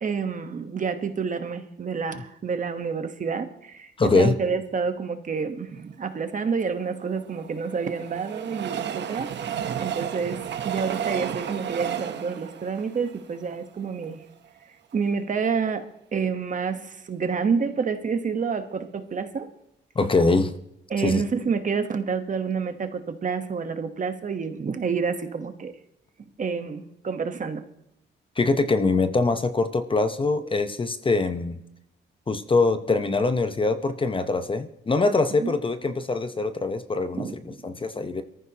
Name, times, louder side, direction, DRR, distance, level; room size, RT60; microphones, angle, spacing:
voice 1, 0.0-14.2 14.9-15.8 16.1-19.5 20.9-25.7 26.2-27.6 35.3-35.5 37.1-37.3, right 5 dB, 40° right, 8 dB, 1.1 m, -28 dB
voice 2, 4.0-4.3 20.0-20.5 21.0-21.2 28.4-31.6 32.3-38.2, left 3 dB, 25° left, 10 dB, 0.8 m, -23 dB
Train, 6.8-14.1 14.6-14.7 14.9-15.0, right 9 dB, 65° right, 0.9 m, -33 dB
23.0 x 14.0 x 2.9 m, 0.82 s
cardioid pair, 105°, 20 cm